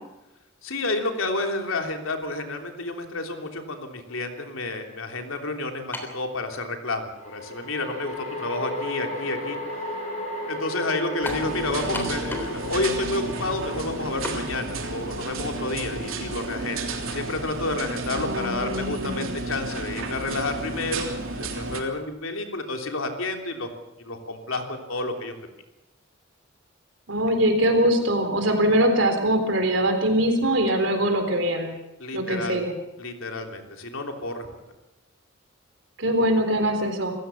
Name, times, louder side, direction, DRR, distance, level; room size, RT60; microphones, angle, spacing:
voice 1, 0.6-9.8 10.5-23.7 24.0-25.3 32.0-32.6 33.0-34.5, left 2 dB, 85° left, 4 dB, 3.2 m, -30 dB
sound 1, 4.3-4.4 7.2-18.5, equal, 35° left, 7.2 m, -36 dB
sound 2, 5.9-6.2 7.1-7.2 11.2-11.5 11.9-12.6 12.9-13.0 14.2-14.4, left 1 dB, 10° left, 3.4 m, -33 dB
sound 3, 11.2-21.8, right 3 dB, 85° right, 3.3 m, -32 dB
voice 2, 18.1-19.3 27.1-31.7 32.1-32.7 36.0-37.1, right 1 dB, 65° right, 6 dB, 4.0 m, -22 dB
27.0 x 15.5 x 7.1 m, 0.96 s
head